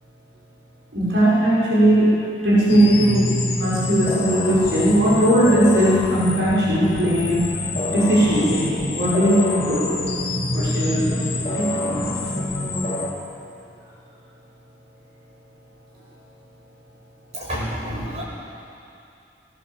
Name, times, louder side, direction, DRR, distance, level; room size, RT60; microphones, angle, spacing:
voice 1, 0.9-7.4 7.9-10.1 10.5-11.0 11.5-12.1, right 1 dB, 80° right, -8 dB, 6.4 m, -19 dB
sound 1, 2.7-13.1, left 1 dB, 35° left, 2.8 m, -26 dB
voice 2, 17.3-18.2, equal, 40° right, -5 dB, 7.2 m, -29 dB
21.0 x 18.5 x 7.8 m, 2.6 s
head